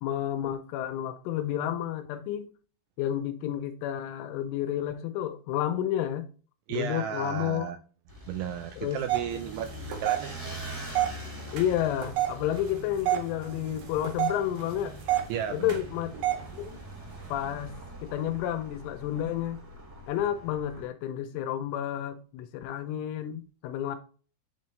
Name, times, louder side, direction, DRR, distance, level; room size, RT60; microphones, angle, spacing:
voice 1, 0.0-2.5 3.0-6.3 6.7-7.7 8.8-9.0 11.5-15.0 15.5-16.1 16.5-16.8 17.3-17.8 18.0-19.6 20.1-24.0, left 11 dB, 80° left, 3.0 m, -31 dB
voice 2, 6.7-7.8 8.3-10.3 15.3-15.8, right 8 dB, 80° right, 2.7 m, -34 dB
sound 1, 8.1-20.9, equal, 25° right, 0.7 m, -45 dB
sound 2, 9.1-17.3, right 12 dB, 60° right, 2.3 m, -32 dB
10.5 x 3.8 x 3.1 m
omnidirectional pair, 5.9 m